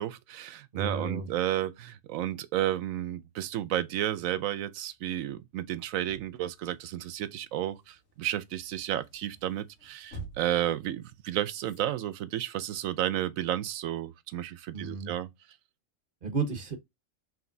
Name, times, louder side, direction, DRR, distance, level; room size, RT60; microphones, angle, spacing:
voice 1, 0.0-15.3, right 12 dB, 80° right, 1.0 m, -32 dB
voice 2, 0.7-1.3 14.7-15.1 16.2-16.8, right 4 dB, 45° right, 1.1 m, -32 dB
sound 1, 4.8-11.8, right 3 dB, 60° left, 1.3 m, -51 dB
5.0 x 3.2 x 2.6 m
omnidirectional pair, 1.4 m